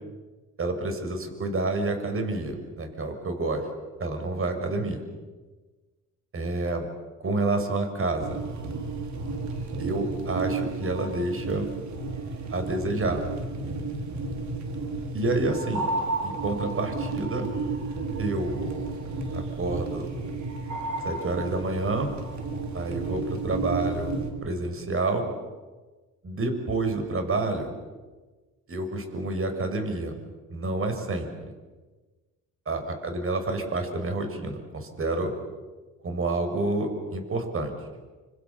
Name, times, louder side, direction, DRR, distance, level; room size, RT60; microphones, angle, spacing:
voice 1, 0.6-3.7 4.0-5.0 6.3-6.9 7.2-8.4 9.8-11.7 12.5-13.2 15.1-15.9 16.2-17.5 18.2-18.5 19.3-20.1 21.0-22.1 22.7-24.1 24.4-25.3 26.2-27.7 28.7-30.1 30.5-31.3 32.7-35.3 36.0-37.7, right 2 dB, 45° right, 6 dB, 6.7 m, -28 dB
sound 1, 8.2-24.3, right 3 dB, 65° right, 5.5 m, -32 dB
29.0 x 27.5 x 7.3 m, 1.3 s
cardioid pair, 90°, 30 cm